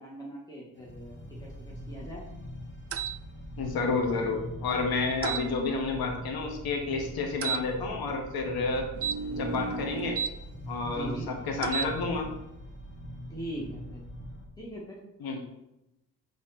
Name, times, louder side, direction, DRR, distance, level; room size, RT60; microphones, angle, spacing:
voice 1, 0.0-2.2 9.6-9.9 10.8-11.3 13.3-14.0 14.6-15.0, equal, 10° left, -4 dB, 1.7 m, -41 dB
sound 1, 0.8-14.4, equal, 30° left, 1.7 m, -42 dB
sound 2, 2.9-3.2 5.2-5.5 7.4-7.6 9.0-10.3 11.6-11.9, right 7 dB, 40° right, 0.4 m, -32 dB
voice 2, 3.6-8.9 9.3-10.2 10.7-12.3 15.2-15.4, left 4 dB, 75° left, 3 dB, 1.5 m, -30 dB
8.3 x 3.5 x 4.3 m, 0.88 s
cardioid pair, 75°, 37 cm